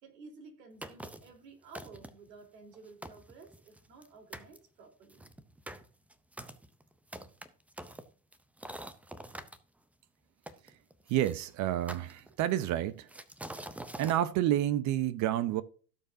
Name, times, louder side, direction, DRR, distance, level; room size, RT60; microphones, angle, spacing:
voice 1, 0.0-5.3, right 4 dB, 75° right, 3.9 m, -53 dB
sound 1, 0.8-1.4 1.7-2.3 2.7-2.8 3.0-4.1 4.3-4.6 5.1-9.6 10.5-11.3 11.9-12.6 13.1-14.2, right 1 dB, 5° right, 0.5 m, -45 dB
voice 2, 11.1-13.1 14.0-15.6, right 12 dB, 35° right, 0.7 m, -29 dB
17.0 x 6.8 x 2.7 m
hypercardioid pair, 100°, 49 cm